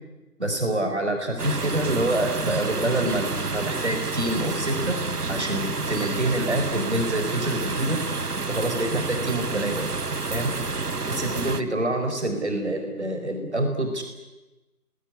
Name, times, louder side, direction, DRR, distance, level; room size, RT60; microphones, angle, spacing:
voice 1, 0.4-5.0 5.3-8.0 8.5-9.9 10.3-10.5 11.1-14.0, right 1 dB, 45° right, 5 dB, 4.7 m, -26 dB
sound 1, 1.4-11.6, right 3 dB, 85° right, 1.4 m, -29 dB
27.5 x 21.5 x 9.8 m, 1.1 s
figure-of-eight pair, 175°, 46 cm